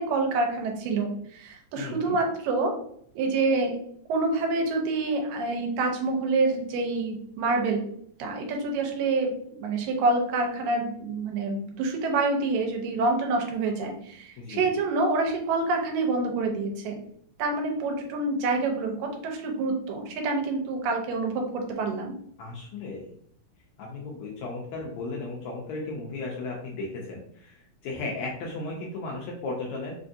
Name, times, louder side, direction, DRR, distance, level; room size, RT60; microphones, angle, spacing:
voice 1, 0.0-2.7 3.2-3.8 4.1-7.9 8.2-17.0 17.4-22.2, right 3 dB, 85° right, 3 dB, 2.4 m, -27 dB
voice 2, 1.8-2.2 14.4-14.7 22.4-23.1 23.8-30.0, left 3 dB, 80° left, -2 dB, 1.7 m, -35 dB
5.1 x 2.5 x 2.5 m, 0.65 s
omnidirectional pair, 3.9 m